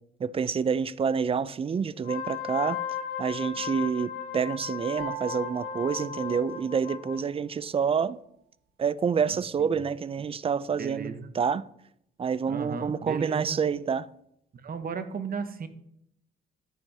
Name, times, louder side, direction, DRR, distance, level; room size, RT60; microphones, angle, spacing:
voice 1, 0.2-2.8 3.2-8.2 8.8-11.7 12.2-14.1, right 6 dB, 30° right, 0.4 m, -28 dB
Wind instrument woodwind instrument, 2.0-7.2, left 9 dB, 80° left, 2.4 m, -36 dB
sound 1, 5.0-7.1, right 14 dB, 75° right, 4.0 m, -42 dB
voice 2, 9.3-9.8 10.7-11.3 12.5-13.6 14.6-15.7, right 5 dB, 45° right, 1.0 m, -36 dB
9.8 x 9.3 x 2.8 m
cardioid pair, 90°, 20 cm